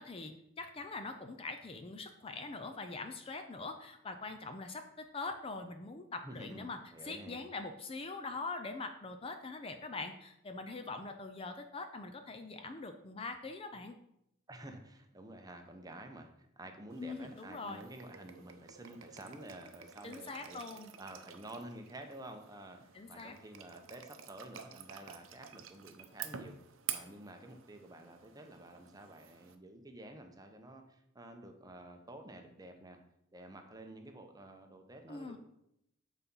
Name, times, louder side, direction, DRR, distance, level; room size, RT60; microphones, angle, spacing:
voice 1, 0.0-6.8 7.0-14.0 17.0-17.8 20.0-20.9 22.9-23.3 35.1-35.4, left 3 dB, 25° left, 7 dB, 0.5 m, -43 dB
voice 2, 6.2-7.4 14.5-22.8 23.1-26.6 26.9-33.0 33.3-35.4, right 1 dB, 20° right, 5 dB, 0.8 m, -50 dB
sound 1, 16.9-29.5, right 9 dB, 70° right, 0.7 m, -49 dB
8.2 x 4.1 x 5.4 m, 0.80 s
head